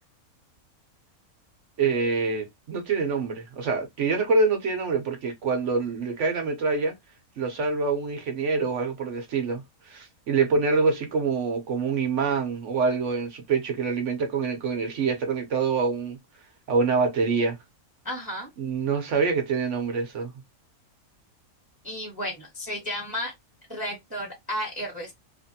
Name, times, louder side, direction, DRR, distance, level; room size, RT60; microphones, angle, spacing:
voice 1, 1.8-6.9 7.4-16.2 16.7-17.6 18.6-20.3, right 4 dB, 60° right, 1.0 m, -25 dB
voice 2, 18.0-18.5 21.8-23.3 23.7-25.1, equal, 5° right, 1.0 m, -33 dB
3.0 x 2.5 x 2.7 m
omnidirectional pair, 1.5 m